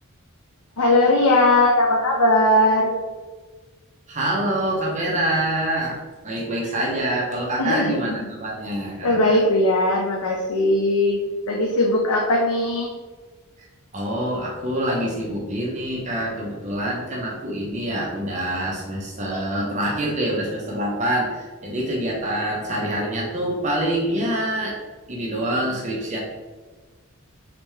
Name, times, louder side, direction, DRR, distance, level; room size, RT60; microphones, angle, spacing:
voice 1, 0.8-2.9 7.6-8.1 9.0-11.2 11.5-12.9, left 1 dB, 85° left, 0 dB, 0.6 m, -19 dB
voice 2, 4.1-6.0 6.2-9.4 13.9-24.7 25.1-26.2, right 1 dB, 35° right, -4 dB, 0.8 m, -26 dB
4.1 x 3.4 x 3.1 m, 1.3 s
head